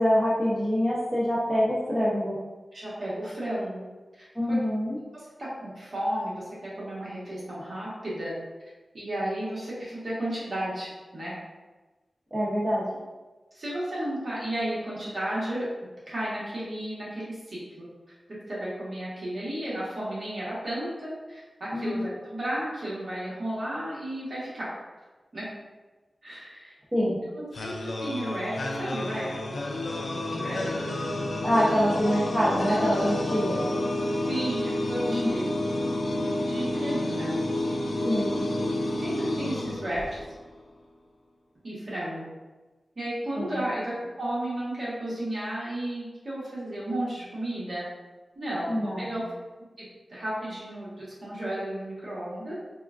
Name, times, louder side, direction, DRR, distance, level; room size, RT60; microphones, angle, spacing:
voice 1, 0.0-2.4 4.3-5.0 12.3-12.8 21.7-22.1 26.9-27.2 31.4-33.7 35.1-35.3 38.0-38.3 43.4-43.6 48.7-49.2, equal, 20° right, -8 dB, 0.6 m, -25 dB
voice 2, 2.7-3.8 4.2-4.6 5.1-8.3 8.9-11.3 13.5-15.7 16.1-17.9 18.5-24.7 25.3-25.5 26.2-29.6 30.1-30.6 34.3-35.4 36.1-37.3 39.0-40.2 41.6-42.3 42.9-47.9 48.3-49.2 49.8-52.5, right 1 dB, 60° right, -8 dB, 1.2 m, -33 dB
sound 1, 27.5-40.5, left 1 dB, 70° left, 0.3 m, -30 dB
3.6 x 2.3 x 2.4 m, 1.2 s
wide cardioid pair, 115°, 0 cm